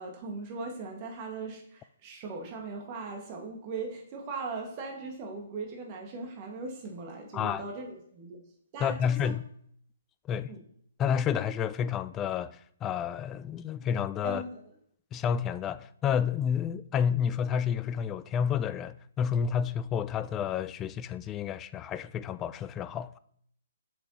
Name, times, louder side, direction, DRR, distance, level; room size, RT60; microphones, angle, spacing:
voice 1, 0.0-8.4 8.7-9.3 10.5-10.6 14.2-14.5, right 3 dB, 30° right, 1.6 m, -39 dB
voice 2, 7.3-7.6 8.8-9.4 10.2-10.6 11.0-14.4 15.1-23.2, left 8 dB, 20° left, 0.3 m, -30 dB
7.3 x 7.3 x 2.9 m
figure-of-eight pair, 125°, 0 cm